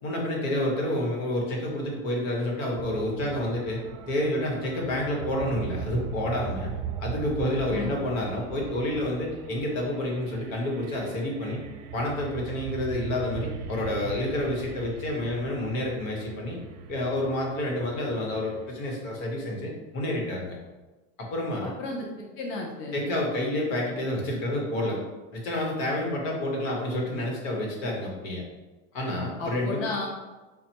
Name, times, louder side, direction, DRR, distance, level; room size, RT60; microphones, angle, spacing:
voice 1, 0.0-3.8 4.1-6.7 7.0-11.6 11.9-16.6 16.9-20.6 21.2-21.7 22.9-25.0 25.3-28.4 28.9-29.9, left 1 dB, 80° left, -1 dB, 1.2 m, -29 dB
sound 1, 2.8-18.7, right 7 dB, 40° right, 0.4 m, -39 dB
voice 2, 22.4-23.0 29.4-30.1, left 3 dB, 35° left, 0 dB, 0.7 m, -32 dB
5.6 x 2.1 x 2.9 m, 1.2 s
supercardioid pair, 135°, 38 cm